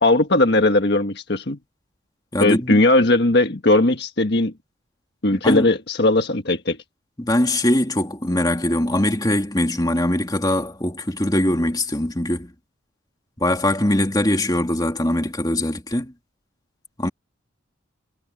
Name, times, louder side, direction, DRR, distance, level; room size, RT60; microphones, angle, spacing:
voice 1, 0.0-1.6 2.4-4.5 5.2-6.8, left 2 dB, 55° left, 1.5 m, -18 dB
voice 2, 2.3-2.8 5.3-5.7 7.2-12.5 13.4-16.1 17.0-17.1, left 1 dB, 20° left, 2.8 m, -22 dB
head